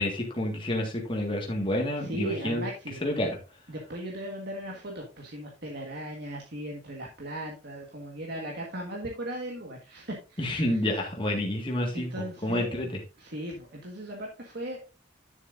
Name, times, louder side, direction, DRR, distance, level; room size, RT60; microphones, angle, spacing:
voice 1, 0.0-2.7 3.0-3.4 10.4-13.0, left 1 dB, 25° left, 0 dB, 1.8 m, -29 dB
voice 2, 2.0-3.0 3.7-10.8 11.9-12.8 13.2-14.8, right 1 dB, 60° right, 0 dB, 1.6 m, -37 dB
10.5 x 7.2 x 2.6 m, 0.32 s
head